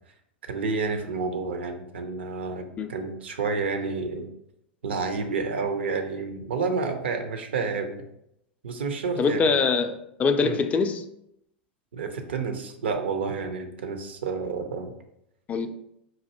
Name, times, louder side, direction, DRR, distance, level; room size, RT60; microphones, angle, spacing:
voice 1, 0.5-4.3 4.8-8.1 8.6-9.6 10.4-10.6 11.9-14.9, right 4 dB, 75° right, 7 dB, 0.5 m, -30 dB
voice 2, 9.2-11.0 15.5-15.7, left 5 dB, 25° left, 8 dB, 0.3 m, -23 dB
4.2 x 2.5 x 2.7 m, 0.77 s
hypercardioid pair, 90°, 6 cm